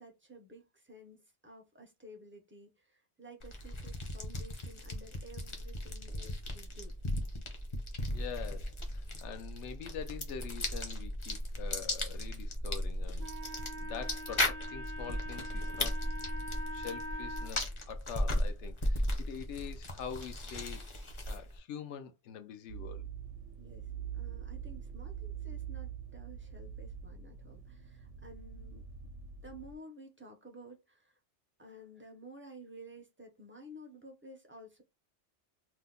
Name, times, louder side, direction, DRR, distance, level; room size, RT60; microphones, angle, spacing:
voice 1, 0.0-6.9 23.6-29.1 29.4-31.2 31.6-34.8, right 1 dB, 20° right, 0.4 m, -53 dB
sound 1, 3.4-21.6, left 1 dB, 35° left, 0.6 m, -36 dB
voice 2, 8.1-16.0 16.7-20.9 21.2-23.1, left 7 dB, 80° left, 0.9 m, -45 dB
Wind instrument woodwind instrument, 13.2-17.5, equal, 55° right, 0.6 m, -43 dB
sound 2, 22.7-29.8, right 8 dB, 85° right, 0.9 m, -44 dB
2.7 x 2.1 x 3.6 m
omnidirectional pair, 1.2 m